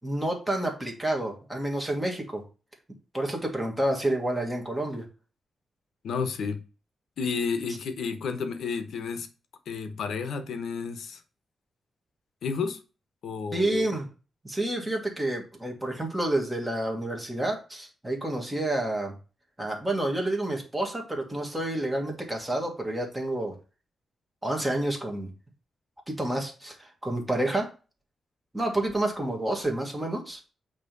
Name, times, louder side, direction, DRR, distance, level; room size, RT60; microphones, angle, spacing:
voice 1, 0.0-2.4 3.1-5.0 13.5-14.1 14.4-19.1 19.6-23.6 24.4-25.3 26.1-27.7 28.5-30.5, right 1 dB, 10° right, 1.7 m, -29 dB
voice 2, 6.0-6.6 7.2-9.3 9.7-11.2 12.4-12.8 13.2-13.8, left 5 dB, 75° left, 1.0 m, -31 dB
8.4 x 3.1 x 5.3 m
wide cardioid pair, 165°, 0 cm